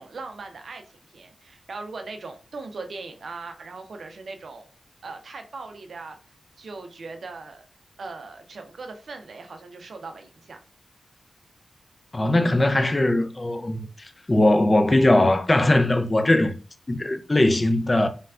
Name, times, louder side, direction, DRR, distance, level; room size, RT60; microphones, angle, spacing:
voice 1, 0.0-4.7 5.0-6.2 6.6-7.7 8.0-10.6, right 3 dB, 70° right, 0.4 m, -39 dB
voice 2, 12.1-16.6 16.9-18.1, left 1 dB, 30° left, 0.4 m, -20 dB
3.2 x 2.2 x 2.4 m
cardioid pair, 60°, 0 cm